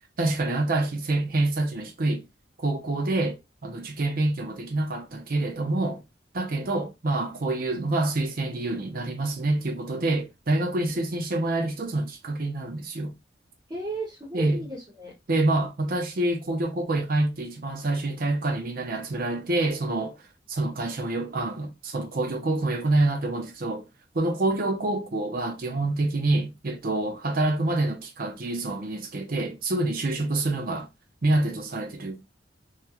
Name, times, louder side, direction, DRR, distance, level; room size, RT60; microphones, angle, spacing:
voice 1, 0.2-2.2 2.6-3.4 3.6-6.0 6.3-13.2 14.3-14.6 15.3-20.2 20.5-23.9 24.1-30.9 31.2-32.2, right 2 dB, 50° right, 0.6 m, -27 dB
voice 2, 13.7-15.1 27.0-27.2 30.1-30.2, right 2 dB, 20° right, 0.8 m, -36 dB
2.9 x 2.3 x 2.3 m
head